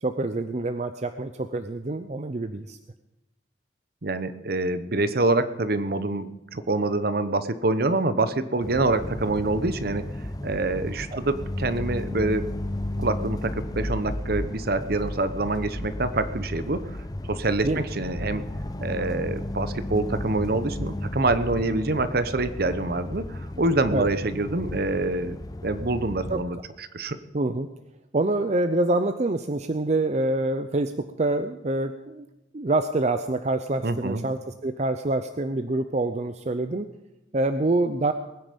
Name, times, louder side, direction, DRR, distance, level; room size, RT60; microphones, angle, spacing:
voice 1, 0.0-2.8 11.1-11.2 17.6-17.8 23.9-24.1 26.3-26.4 27.3-27.7 28.1-32.3 32.5-36.9 37.3-38.1, right 2 dB, 40° right, 9 dB, 0.6 m, -26 dB
voice 2, 4.0-10.0 10.4-12.5 13.0-17.0 17.3-18.4 18.8-25.4 25.6-27.2 33.8-34.2, right 2 dB, 55° right, 12 dB, 0.9 m, -26 dB
sound 1, 8.6-26.4, left 1 dB, 20° left, 0.7 m, -33 dB
20.5 x 9.8 x 5.3 m, 0.94 s
head